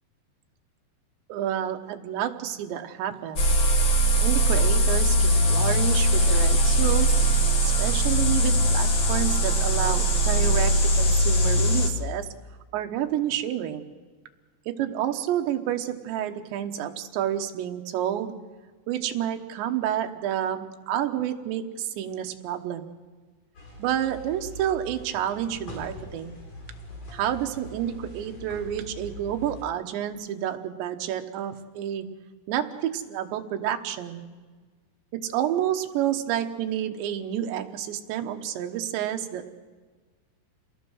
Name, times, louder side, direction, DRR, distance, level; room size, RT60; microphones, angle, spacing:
voice 1, 1.3-3.5 4.2-7.2 7.6-12.3 12.7-13.9 14.7-18.3 18.9-22.9 23.8-26.4 27.1-32.1 32.5-34.3 35.1-39.5, right 11 dB, 75° right, 5 dB, 3.4 m, -29 dB
sound 1, 3.4-11.9, right 1 dB, 70° left, 1.1 m, -21 dB
sound 2, 23.6-29.6, left 1 dB, 40° left, 4.7 m, -42 dB
28.0 x 20.5 x 6.3 m, 1.4 s
omnidirectional pair, 5.3 m